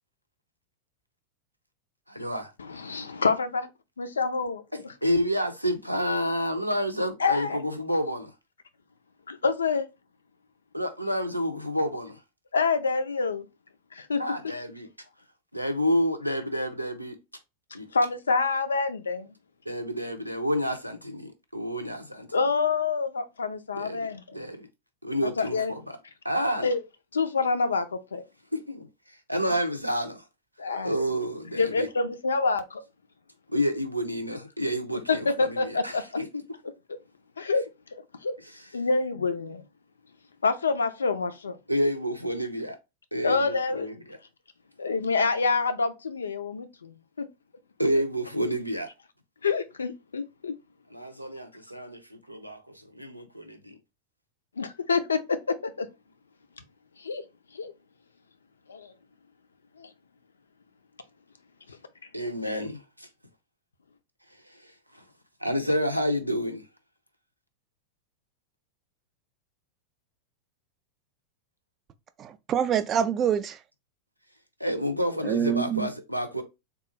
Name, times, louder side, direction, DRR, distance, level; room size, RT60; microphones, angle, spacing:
voice 1, 2.1-2.5 4.7-8.3 10.7-12.2 14.2-14.9 15.5-17.2 17.7-17.9 19.7-22.3 23.7-24.7 25.0-26.0 26.2-26.7 28.5-28.9 29.3-30.2 30.8-31.9 33.5-36.4 41.7-42.8 43.1-44.2 47.8-48.9 50.9-53.7 62.1-63.1 64.5-64.6 64.9-65.0 65.4-66.6 74.6-76.4, equal, 90° right, 0.6 m, -29 dB
voice 2, 2.6-3.7 4.0-4.6 7.2-7.6 9.3-9.9 12.5-13.4 13.9-14.2 17.9-19.3 22.3-24.2 25.2-25.7 26.6-26.8 27.1-28.2 30.6-30.9 31.6-32.8 35.1-36.1 37.4-37.7 37.9-38.3 38.7-39.6 40.4-41.6 43.2-43.9 44.8-47.3 49.4-50.5 54.6-55.9 57.0-57.2 57.5-57.7 58.7-58.9 59.8-59.9, left 4 dB, 75° left, 0.4 m, -27 dB
voice 3, 72.2-73.6 75.2-75.9, right 8 dB, 30° right, 0.4 m, -26 dB
3.6 x 2.4 x 3.0 m
figure-of-eight pair, 90°, 0 cm